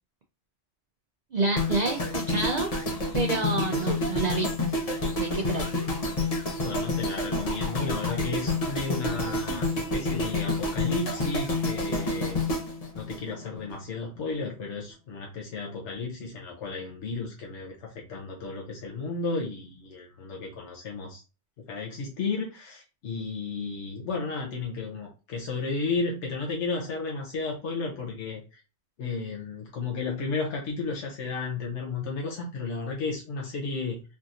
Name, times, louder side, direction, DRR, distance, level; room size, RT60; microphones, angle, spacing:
voice 1, 1.3-2.7 3.1-4.5 5.2-5.8, right 3 dB, 55° right, 3 dB, 0.5 m, -28 dB
sound 1, 1.6-13.8 14.0-14.3, left 2 dB, 40° left, 0.8 m, -29 dB
voice 2, 6.6-12.4 12.9-21.2 21.7-28.4 29.0-34.0, left 4 dB, 80° left, -1 dB, 1.1 m, -33 dB
3.5 x 2.7 x 2.4 m, 0.32 s
omnidirectional pair, 1.2 m